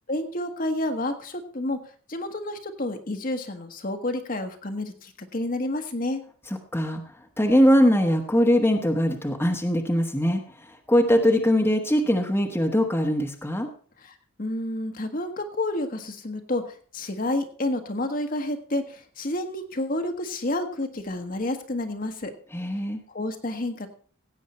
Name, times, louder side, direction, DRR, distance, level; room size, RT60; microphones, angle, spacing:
voice 1, 0.1-1.8 2.1-6.2 14.0-22.3 23.1-23.9, left 1 dB, 40° left, 5 dB, 1.3 m, -30 dB
voice 2, 7.4-10.4 10.7-13.7 22.5-23.0, equal, 10° left, 2 dB, 1.2 m, -21 dB
16.5 x 8.2 x 4.2 m, 0.43 s
head